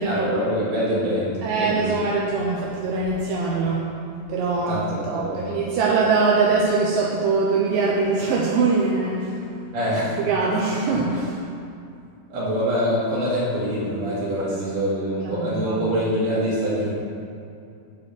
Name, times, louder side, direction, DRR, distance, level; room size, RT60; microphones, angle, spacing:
voice 1, 0.0-1.9 4.7-5.6 9.7-10.2 12.3-16.9, equal, 55° right, -8 dB, 3.0 m, -25 dB
voice 2, 1.4-3.9 4.3-9.5 10.2-11.4 15.3-15.9, right 4 dB, 80° right, -3 dB, 2.3 m, -23 dB
7.1 x 4.2 x 6.7 m, 2.5 s
omnidirectional pair, 3.9 m